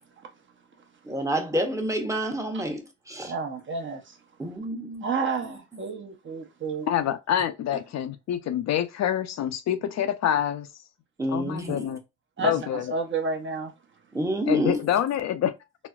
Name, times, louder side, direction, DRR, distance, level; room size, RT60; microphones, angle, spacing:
voice 1, 1.0-3.3 4.4-5.1 11.2-11.9 12.4-12.5 14.1-14.8, right 1 dB, 10° right, 0.8 m, -28 dB
voice 2, 3.3-4.2 5.0-6.9 12.4-13.7, right 4 dB, 40° right, 0.8 m, -30 dB
voice 3, 6.9-10.7 11.3-12.0 12.4-12.8 14.5-15.5, left 10 dB, 60° left, 0.5 m, -26 dB
4.0 x 2.0 x 2.3 m
cardioid pair, 90°, 30 cm